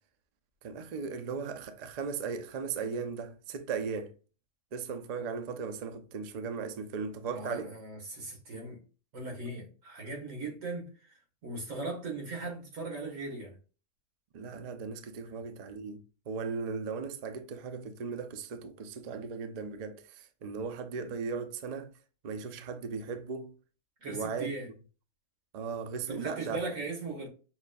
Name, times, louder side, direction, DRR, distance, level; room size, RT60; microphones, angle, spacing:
voice 1, 0.6-4.1 4.7-7.7 14.3-21.9 22.2-23.5 24.1-24.5 25.5-26.6, right 5 dB, 65° right, 0.4 m, -37 dB
voice 2, 7.3-8.8 9.1-13.6 15.3-15.4 24.0-24.7 26.1-27.3, right 3 dB, 85° right, 1.8 m, -39 dB
5.6 x 2.2 x 2.5 m
omnidirectional pair, 1.3 m